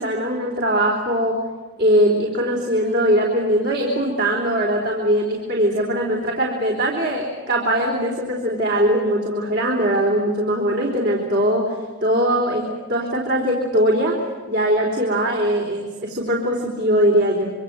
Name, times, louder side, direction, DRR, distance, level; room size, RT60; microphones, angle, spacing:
voice 1, 0.0-1.4 1.8-14.2 14.5-17.5, equal, 55° right, -1 dB, 4.1 m, -21 dB
26.0 x 25.0 x 7.6 m, 1.4 s
head